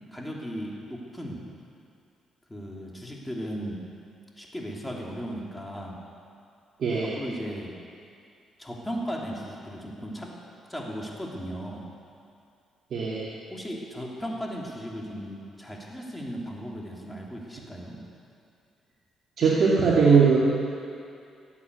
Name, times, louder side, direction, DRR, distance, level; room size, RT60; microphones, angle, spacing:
voice 1, 0.1-1.4 2.5-3.8 4.4-5.9 7.2-7.7 8.6-10.3 10.7-11.9 13.5-18.0, equal, 10° left, -2 dB, 3.0 m, -36 dB
voice 2, 6.8-7.1 12.9-13.3 19.4-20.4, right 5 dB, 60° right, -5 dB, 2.5 m, -20 dB
18.0 x 8.5 x 8.2 m, 2.4 s
cardioid pair, 90°, 0 cm